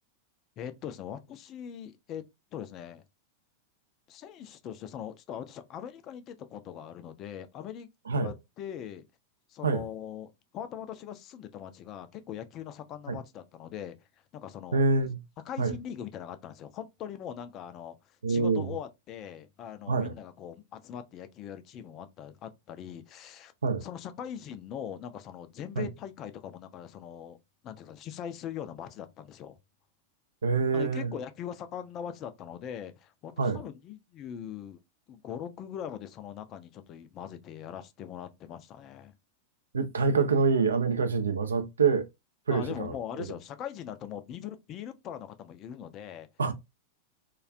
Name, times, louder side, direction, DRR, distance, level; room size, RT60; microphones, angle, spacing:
voice 1, 0.6-2.2 2.5-3.0 4.1-7.9 8.1-9.1 9.5-14.0 14.3-14.8 15.4-23.5 23.8-27.4 27.6-29.6 30.7-34.8 35.1-39.1 42.5-46.3, left 9 dB, 35° left, 0.3 m, -41 dB
voice 2, 14.7-15.2 15.6-15.7 18.2-18.7 19.9-20.1 23.6-23.8 25.8-25.9 30.4-31.1 33.4-33.6 39.7-42.1 42.5-42.9 46.4-46.5, right 4 dB, 70° right, 0.4 m, -26 dB
2.3 x 2.2 x 2.4 m
figure-of-eight pair, 90°, 0 cm